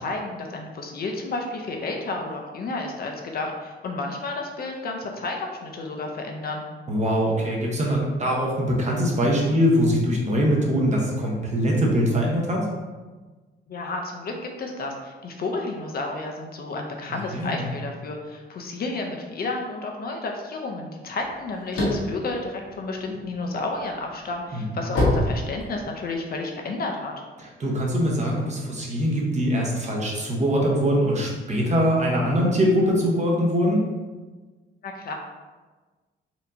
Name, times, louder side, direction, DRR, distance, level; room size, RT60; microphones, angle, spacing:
voice 1, 0.0-6.6 13.7-27.1 34.8-35.1, left 3 dB, 50° left, 2 dB, 0.6 m, -31 dB
voice 2, 6.9-12.7 17.1-17.6 24.5-24.8 27.4-33.8, equal, 35° right, -2 dB, 0.9 m, -23 dB
sound 1, 21.2-23.4 23.9-26.1, left 1 dB, 75° left, 1.2 m, -25 dB
4.3 x 2.7 x 2.7 m, 1.3 s
cardioid pair, 90°, 20 cm